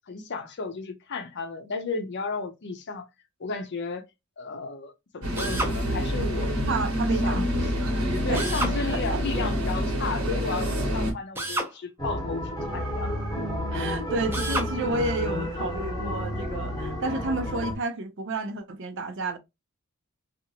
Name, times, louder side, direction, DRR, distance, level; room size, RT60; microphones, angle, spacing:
voice 1, 0.1-3.1 3.4-4.1 4.4-6.6 7.2-7.5 8.2-13.5, left 4 dB, 50° left, 0.5 m, -34 dB
sound 1, 5.2-11.1, equal, 80° right, 1.2 m, -27 dB
Drill, 5.4-5.8 8.3-8.8 11.4-11.7 14.3-14.7, right 1 dB, 10° right, 0.6 m, -29 dB
voice 2, 6.7-7.7 8.3-8.6 9.1-9.6 13.7-19.4, right 2 dB, 55° right, 0.6 m, -31 dB
sound 2, 12.0-17.7, left 1 dB, 15° left, 0.9 m, -31 dB
2.8 x 2.4 x 2.7 m
head